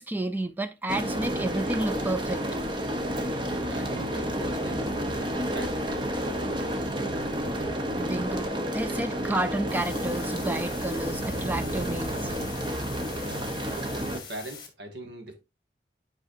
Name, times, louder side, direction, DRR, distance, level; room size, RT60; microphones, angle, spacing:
voice 1, 0.0-2.4 7.9-12.3, right 2 dB, 10° right, 0.3 m, -31 dB
sound 1, 0.9-14.2, equal, 25° right, 0.8 m, -30 dB
voice 2, 3.4-4.9 5.3-6.9 13.2-15.4, right 2 dB, 75° right, 1.7 m, -42 dB
sound 2, 9.7-14.7, left 6 dB, 25° left, 1.4 m, -44 dB
8.9 x 4.9 x 2.6 m
head